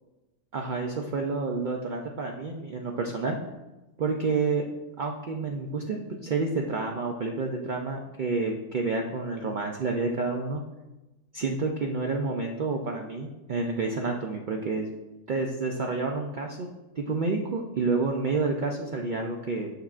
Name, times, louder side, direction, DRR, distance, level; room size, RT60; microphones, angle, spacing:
voice 1, 0.5-3.4 4.0-4.6 5.0-10.6 11.3-14.8 15.3-16.7 17.0-19.7, right 3 dB, 90° right, 1 dB, 0.4 m, -29 dB
6.5 x 6.0 x 2.4 m, 1.0 s
omnidirectional pair, 1.5 m